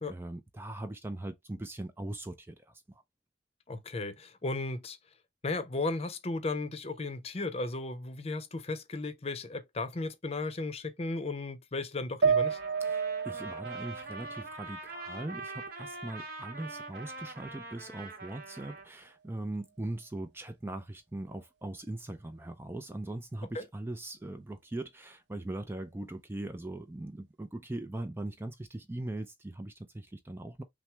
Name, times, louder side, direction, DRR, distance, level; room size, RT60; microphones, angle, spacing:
voice 1, 0.1-3.0 12.8-30.6, right 1 dB, 15° right, 0.4 m, -40 dB
voice 2, 3.7-5.0 5.4-12.6 23.5-23.6, left 3 dB, 35° left, 0.6 m, -35 dB
sound 1, 12.2-15.6 16.0-17.0, right 6 dB, 75° right, 0.6 m, -32 dB
Trumpet, 12.3-18.9, right 2 dB, 55° right, 1.2 m, -44 dB
5.9 x 2.1 x 3.3 m
head